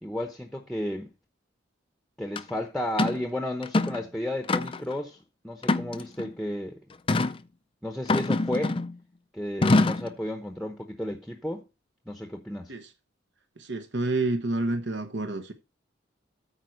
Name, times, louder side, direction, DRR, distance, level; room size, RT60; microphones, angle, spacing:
voice 1, 0.0-1.1 2.2-5.2 5.4-6.8 7.8-8.8 9.3-11.6 12.1-12.7, left 1 dB, ahead, 0.9 m, -33 dB
sound 1, 2.4-2.5 3.0-3.2 3.6-4.0 4.5-4.9 5.6-6.3 7.1-7.4 8.1-9.0 9.6-10.1, left 2 dB, 25° left, 0.4 m, -24 dB
voice 2, 13.6-15.5, right 2 dB, 60° right, 1.1 m, -29 dB
9.0 x 4.5 x 6.4 m
head